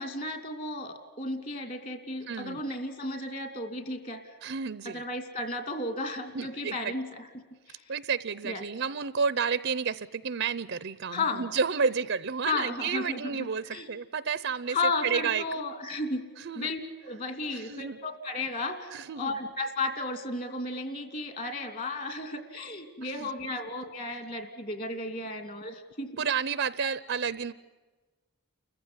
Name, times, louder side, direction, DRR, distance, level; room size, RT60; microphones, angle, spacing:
voice 1, 0.0-4.4 4.8-7.2 7.7-7.9 8.4-8.6 11.1-11.5 12.4-13.4 13.6-13.9 14.7-16.2 16.5-26.2, left 2 dB, 40° left, 8 dB, 2.8 m, -34 dB
voice 2, 2.3-2.6 4.4-5.0 6.3-6.9 7.9-14.8 15.0-15.4 16.4-16.7 17.5-18.0 18.9-19.4 23.0-23.3 26.2-27.5, right 6 dB, 55° right, 16 dB, 0.7 m, -31 dB
29.5 x 15.5 x 9.9 m, 1.3 s
head